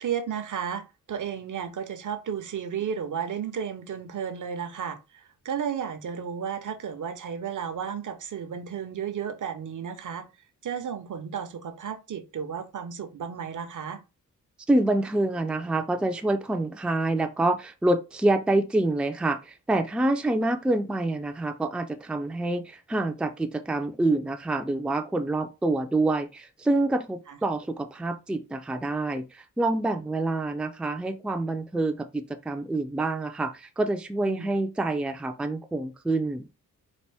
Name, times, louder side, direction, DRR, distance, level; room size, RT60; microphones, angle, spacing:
voice 1, 0.0-5.0 5.4-10.2 10.6-14.0 27.3-27.4 34.3-34.5, right 7 dB, 70° right, 0.8 m, -33 dB
voice 2, 14.7-36.5, right 2 dB, 5° right, 0.4 m, -27 dB
4.2 x 2.5 x 3.4 m
wide cardioid pair, 95°, 32 cm